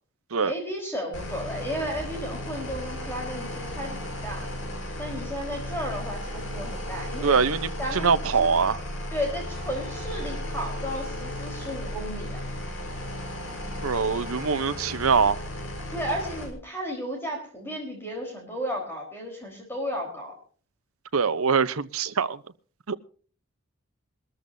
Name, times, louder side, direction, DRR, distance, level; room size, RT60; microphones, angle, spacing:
voice 1, 0.4-4.5 5.0-7.4 7.8-8.5 9.1-12.4 15.9-20.4, equal, 10° left, 4.0 m, -33 dB
sound 1, 1.1-16.5, left 1 dB, 60° left, 4.6 m, -35 dB
voice 2, 7.2-8.8 13.8-15.4 21.1-22.4 22.9-23.0, right 5 dB, 75° right, 0.8 m, -23 dB
22.5 x 14.0 x 2.7 m
head